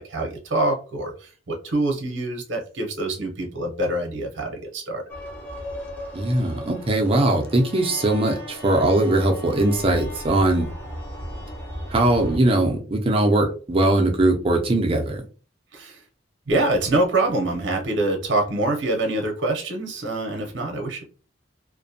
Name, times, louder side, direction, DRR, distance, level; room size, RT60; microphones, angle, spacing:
voice 1, 0.0-5.0 15.7-16.0 16.5-21.0, right 2 dB, 70° right, 0.6 m, -25 dB
sound 1, 5.1-12.4, equal, 10° left, 0.7 m, -36 dB
voice 2, 6.1-10.7 11.9-15.2, right 2 dB, 30° right, 0.5 m, -20 dB
2.4 x 2.2 x 2.6 m
head